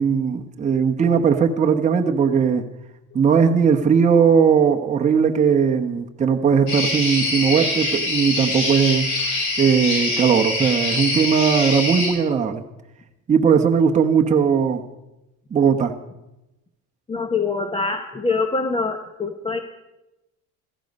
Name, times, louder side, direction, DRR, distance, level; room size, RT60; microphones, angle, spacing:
voice 1, 0.0-2.6 3.1-9.1 9.6-12.6 13.3-14.8 15.5-15.9, right 6 dB, 20° right, 3 dB, 1.0 m, -18 dB
sound 1, 6.7-12.1, left 2 dB, 60° left, 7.0 m, -24 dB
voice 2, 17.1-19.6, left 4 dB, 15° left, 6 dB, 0.9 m, -24 dB
16.0 x 14.5 x 5.3 m, 0.96 s
cardioid pair, 135°, 33 cm